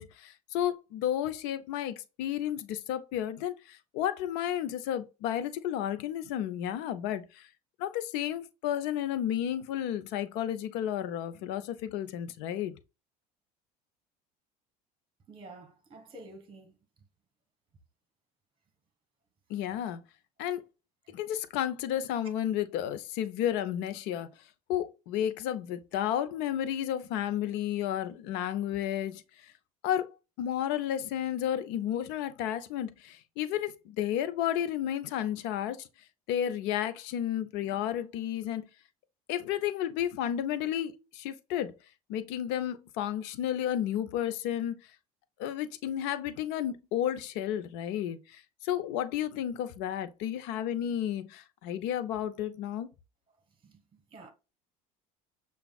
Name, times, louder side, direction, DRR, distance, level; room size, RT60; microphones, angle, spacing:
voice 1, 0.0-7.5 7.8-12.7 19.5-20.0 20.4-20.6 21.1-24.3 24.7-29.5 29.8-30.1 30.4-35.9 36.3-38.7 39.3-41.7 42.1-44.8 45.4-52.9, left 10 dB, 70° left, 0.6 m, -32 dB
voice 2, 15.3-16.8 21.0-21.2 53.3-54.3, right 2 dB, 30° right, 1.3 m, -50 dB
6.9 x 2.3 x 2.3 m
supercardioid pair, 90°, 18 cm